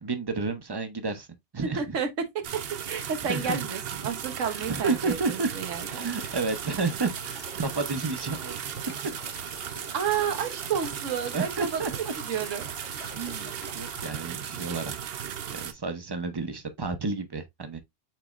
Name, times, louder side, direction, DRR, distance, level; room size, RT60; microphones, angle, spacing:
voice 1, 0.0-1.3 1.5-2.0 3.2-3.6 4.4-5.5 5.9-8.8 11.3-12.1 13.1-15.0 15.5-17.8, right 4 dB, 30° right, 0.5 m, -31 dB
voice 2, 1.8-2.1 2.3-5.9 9.9-11.8 12.3-12.6, right 7 dB, 90° right, 1.3 m, -30 dB
sound 1, 2.4-15.7, right 9 dB, 60° right, 0.8 m, -36 dB
sound 2, 5.8-14.1, left 5 dB, 70° left, 1.3 m, -48 dB
7.3 x 3.1 x 2.3 m
omnidirectional pair, 1.3 m